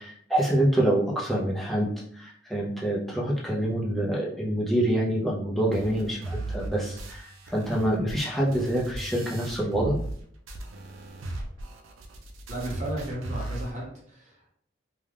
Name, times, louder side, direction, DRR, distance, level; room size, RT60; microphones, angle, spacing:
voice 1, 0.0-10.0, right 1 dB, ahead, -5 dB, 0.6 m, -26 dB
sound 1, 5.7-10.2 10.5-13.7, right 2 dB, 80° right, 0.5 m, -37 dB
voice 2, 12.5-14.5, right 1 dB, 35° right, -4 dB, 0.8 m, -35 dB
2.4 x 2.2 x 3.3 m, 0.64 s
head